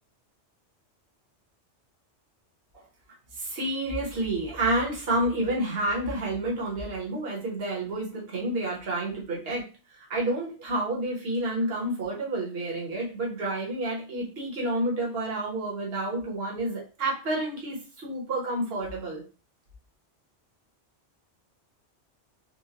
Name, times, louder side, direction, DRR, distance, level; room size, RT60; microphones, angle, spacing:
voice 1, 3.4-9.6 9.9-19.2, right 1 dB, 55° right, -3 dB, 1.3 m, -29 dB
4.3 x 2.2 x 2.8 m, 0.35 s
omnidirectional pair, 1.2 m